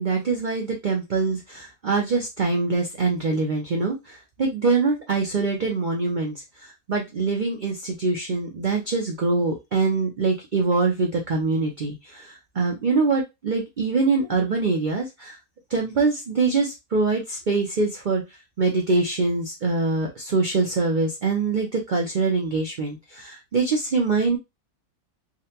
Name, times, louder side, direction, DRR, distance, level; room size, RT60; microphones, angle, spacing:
voice 1, 0.0-6.4 6.9-12.2 12.5-15.3 15.7-18.2 18.6-24.4, right 3 dB, 75° right, 1 dB, 0.4 m, -24 dB
3.8 x 2.2 x 2.8 m, 0.22 s
omnidirectional pair, 1.7 m